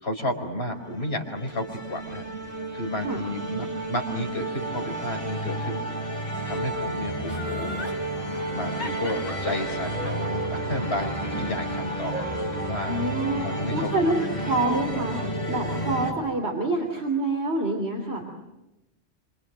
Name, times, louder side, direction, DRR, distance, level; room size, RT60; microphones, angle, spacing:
voice 1, 0.0-2.3 2.7-5.8 6.5-7.8 8.5-13.0 13.4-13.9, left 1 dB, 60° left, 3 dB, 4.9 m, -32 dB
sound 1, 0.7-16.1, right 1 dB, 30° left, 6.1 m, -31 dB
Laughter, 7.3-8.0 8.8-11.9 12.3-12.4, left 2 dB, 80° left, 3.6 m, -38 dB
voice 2, 12.9-18.3, right 2 dB, 65° right, 3 dB, 3.4 m, -27 dB
27.0 x 27.0 x 7.9 m, 0.95 s
omnidirectional pair, 1.2 m